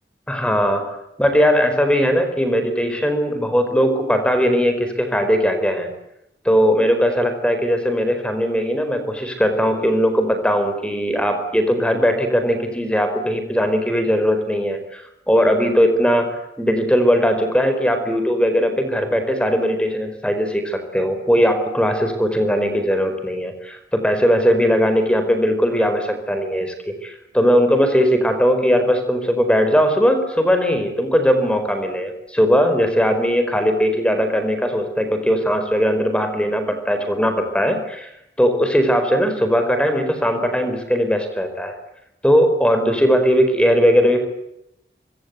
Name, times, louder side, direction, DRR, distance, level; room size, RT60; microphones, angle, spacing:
voice 1, 0.3-0.9 1.2-5.9 6.4-16.3 16.6-38.1 38.4-41.7 42.2-44.3, equal, 5° left, 7 dB, 4.4 m, -19 dB
25.0 x 25.0 x 8.1 m, 0.86 s
head